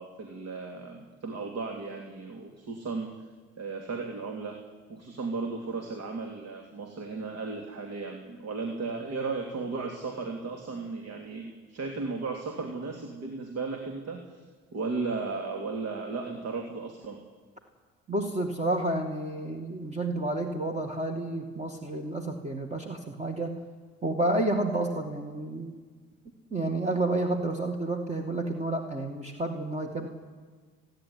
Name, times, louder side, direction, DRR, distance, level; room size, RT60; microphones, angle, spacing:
voice 1, 0.0-3.1 3.6-4.6 4.9-14.4 14.7-17.2, right 4 dB, 55° right, 4 dB, 3.0 m, -35 dB
voice 2, 18.1-23.6 24.0-25.7 26.5-30.1, right 2 dB, 20° right, 4 dB, 2.4 m, -30 dB
29.5 x 11.0 x 9.7 m, 1.5 s
supercardioid pair, 80°, 30 cm